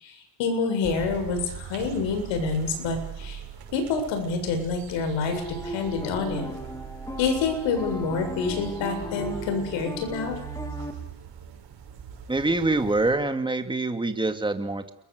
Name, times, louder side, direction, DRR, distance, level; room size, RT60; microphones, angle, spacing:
voice 1, 0.4-3.4 3.7-6.5 7.2-10.4, left 4 dB, 75° left, 7 dB, 7.5 m, -27 dB
sound 1, 0.8-13.1, right 8 dB, 50° right, 6.9 m, -41 dB
sound 2, 5.3-10.9, left 1 dB, 5° left, 3.5 m, -37 dB
voice 2, 12.3-14.9, right 2 dB, 10° right, 6 dB, 2.6 m, -25 dB
29.0 x 22.5 x 6.8 m, 0.77 s
cardioid pair, 125°, 46 cm